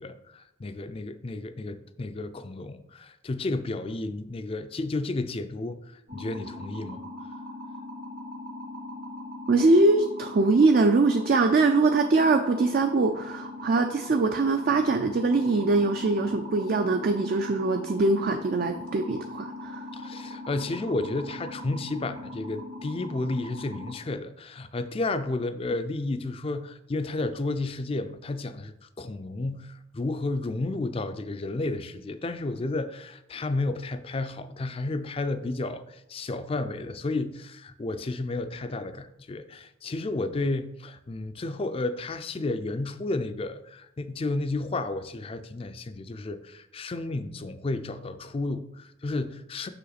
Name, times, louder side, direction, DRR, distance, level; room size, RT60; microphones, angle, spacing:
voice 1, 0.0-7.0 19.9-49.7, left 2 dB, 30° left, 11 dB, 0.4 m, -32 dB
sound 1, 6.1-23.9, left 1 dB, 70° right, 1.9 m, -40 dB
voice 2, 9.5-19.8, right 3 dB, 45° right, 6 dB, 0.4 m, -22 dB
6.3 x 5.5 x 4.0 m, 0.84 s
head